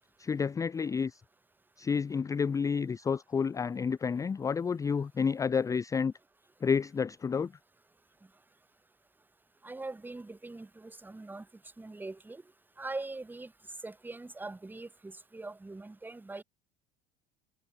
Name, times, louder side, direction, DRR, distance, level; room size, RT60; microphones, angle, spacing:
voice 1, 0.2-1.2 1.8-6.1 6.6-7.5, left 6 dB, 10° left, 0.4 m, -30 dB
voice 2, 9.6-11.5 11.8-12.4 12.8-13.5 13.8-16.4, right 2 dB, 5° right, 0.8 m, -42 dB
figure-of-eight pair, 75°, 30 cm